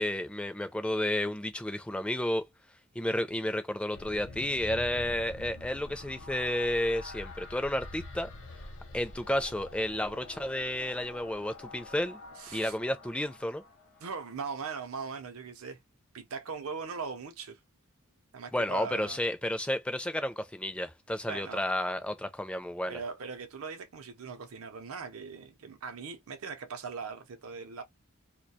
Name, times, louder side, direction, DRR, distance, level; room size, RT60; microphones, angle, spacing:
voice 1, 0.0-2.4 3.0-8.3 8.9-12.2 12.5-13.6 18.5-23.0, left 1 dB, 5° left, 0.4 m, -31 dB
sound 1, 3.9-14.3, left 2 dB, 60° left, 0.7 m, -46 dB
voice 2, 12.4-12.7 14.0-15.8 16.1-17.6 18.3-19.2 21.3-21.6 22.9-27.8, right 5 dB, 75° right, 0.6 m, -40 dB
2.3 x 2.2 x 2.6 m
head